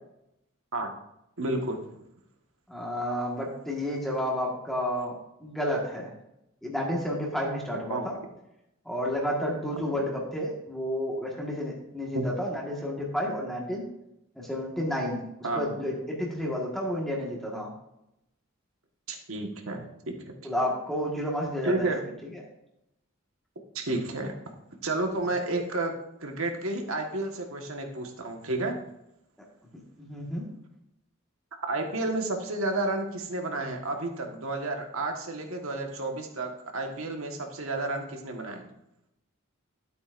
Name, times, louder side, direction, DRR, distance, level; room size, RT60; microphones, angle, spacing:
voice 1, 1.4-1.8 7.9-8.0 9.9-10.0 12.1-12.3 15.4-15.7 19.1-20.3 21.6-22.0 23.7-24.3 24.8-25.9 26.2-28.7 31.7-38.7, right 2 dB, 70° right, 3 dB, 1.5 m, -31 dB
voice 2, 2.7-6.1 6.6-8.2 8.8-13.8 14.4-15.2 15.5-17.7 20.4-21.9 22.3-22.4 29.7-30.5, equal, ahead, -3 dB, 1.6 m, -31 dB
12.5 x 8.0 x 2.6 m, 0.84 s
head